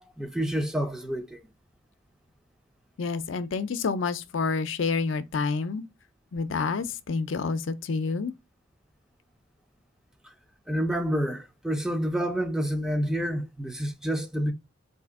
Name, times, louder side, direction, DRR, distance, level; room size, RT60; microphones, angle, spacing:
voice 1, 0.2-1.4 10.7-14.5, equal, 5° right, 0.4 m, -28 dB
voice 2, 3.0-5.8 6.3-8.3, left 4 dB, 80° left, 0.5 m, -28 dB
4.2 x 2.7 x 3.5 m
head